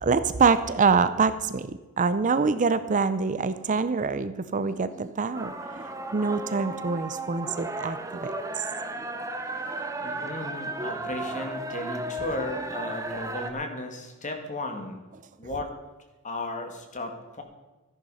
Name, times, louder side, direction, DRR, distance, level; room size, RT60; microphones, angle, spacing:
voice 1, 0.0-1.7 2.0-5.8 6.1-8.3 8.6-8.7, right 4 dB, 35° right, 12 dB, 0.5 m, -25 dB
sound 1, 5.3-13.5, right 2 dB, 15° right, 1.0 m, -34 dB
voice 2, 10.0-15.0 15.4-15.7 16.2-17.4, left 2 dB, 35° left, 5 dB, 2.0 m, -35 dB
14.0 x 10.5 x 5.6 m, 1.1 s
head